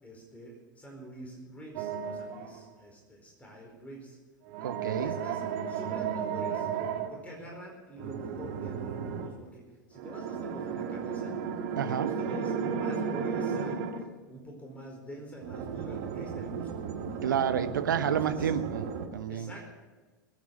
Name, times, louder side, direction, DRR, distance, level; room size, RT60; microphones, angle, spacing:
voice 1, 0.0-4.2 5.0-9.6 9.9-11.4 11.8-13.8 14.3-17.3 17.8-18.5 19.3-19.7, right 1 dB, 15° left, 0 dB, 4.7 m, -46 dB
sound 1, 1.7-2.6 4.5-7.1 8.0-9.3 9.9-14.0 15.4-19.1, right 7 dB, 55° right, 1.9 m, -34 dB
voice 2, 4.6-5.1 11.8-12.1 17.2-19.5, right 8 dB, 70° right, 10 dB, 1.0 m, -30 dB
21.0 x 9.5 x 6.5 m, 1.3 s
figure-of-eight pair, 85°, 11 cm